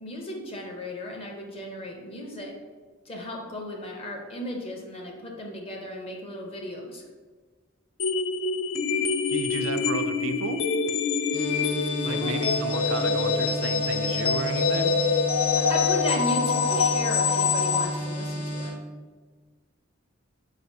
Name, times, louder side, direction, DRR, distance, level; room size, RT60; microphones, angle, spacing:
voice 1, 0.0-2.5 3.1-7.0 12.1-12.3 15.6-18.7, left 1 dB, 30° left, 0 dB, 0.6 m, -35 dB
sound 1, 8.0-17.9, left 5 dB, 75° left, 0.3 m, -25 dB
voice 2, 9.3-10.6 12.0-15.0, right 5 dB, 70° right, 9 dB, 0.3 m, -34 dB
sound 2, 11.3-18.7, equal, 50° left, 1.4 m, -33 dB
4.6 x 3.2 x 2.7 m, 1.4 s
head